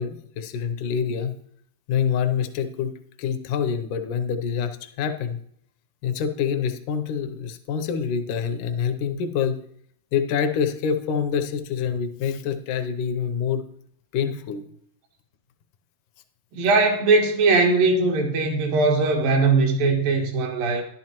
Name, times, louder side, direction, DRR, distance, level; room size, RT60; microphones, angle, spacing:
voice 1, 0.0-1.4 1.9-2.9 3.2-5.4 6.0-9.6 10.1-13.6 14.1-14.6, left 7 dB, 75° left, 7 dB, 2.1 m, -26 dB
voice 2, 16.5-20.8, right 3 dB, 80° right, 2 dB, 3.2 m, -20 dB
11.5 x 10.5 x 3.0 m, 0.66 s
omnidirectional pair, 3.9 m